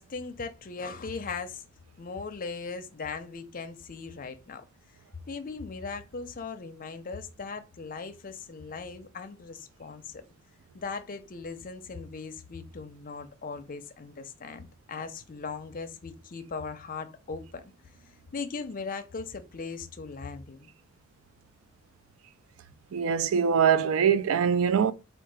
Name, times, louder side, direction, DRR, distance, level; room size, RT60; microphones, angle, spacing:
voice 1, 0.0-1.7 2.0-4.7 5.3-10.2 10.7-17.7 18.3-20.7, left 4 dB, 45° left, 0.6 m, -39 dB
voice 2, 22.9-24.9, right 7 dB, 85° right, 0.4 m, -23 dB
3.7 x 2.4 x 4.6 m
head